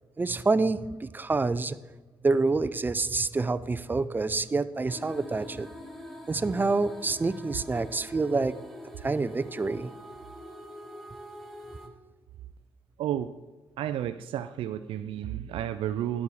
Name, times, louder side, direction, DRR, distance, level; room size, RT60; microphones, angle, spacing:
voice 1, 0.2-1.8 2.2-5.7 6.3-8.6 9.0-9.9, right 3 dB, 20° right, 15 dB, 0.5 m, -27 dB
sound 1, 4.9-11.9, left 1 dB, ahead, 1.5 m, -45 dB
voice 2, 13.0-13.4 13.8-16.2, right 11 dB, 85° right, 10 dB, 0.4 m, -32 dB
11.0 x 7.2 x 4.8 m, 1.2 s
cardioid pair, 95°, 9 cm